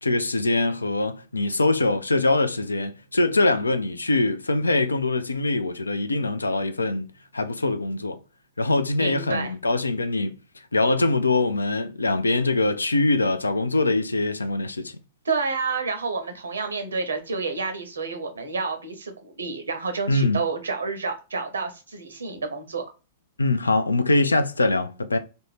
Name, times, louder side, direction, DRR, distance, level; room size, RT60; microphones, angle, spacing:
voice 1, 0.0-7.1 7.3-8.2 8.6-10.4 10.7-14.9 20.1-20.4 23.4-25.2, left 2 dB, 90° left, 0.3 m, -23 dB
voice 2, 9.0-9.5 15.2-22.9, right 4 dB, 80° right, 0.6 m, -29 dB
2.6 x 2.0 x 3.2 m
figure-of-eight pair, 100°, 0 cm